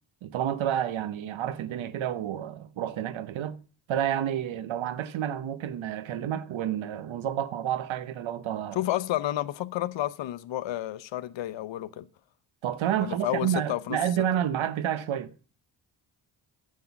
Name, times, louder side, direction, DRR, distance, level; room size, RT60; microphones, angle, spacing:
voice 1, 0.2-3.6 3.9-8.8 12.6-15.3, right 10 dB, 80° right, 1.0 m, -30 dB
voice 2, 8.7-12.1 13.0-14.0, left 13 dB, 70° left, 0.7 m, -31 dB
9.6 x 7.7 x 5.8 m
supercardioid pair, 55°, 47 cm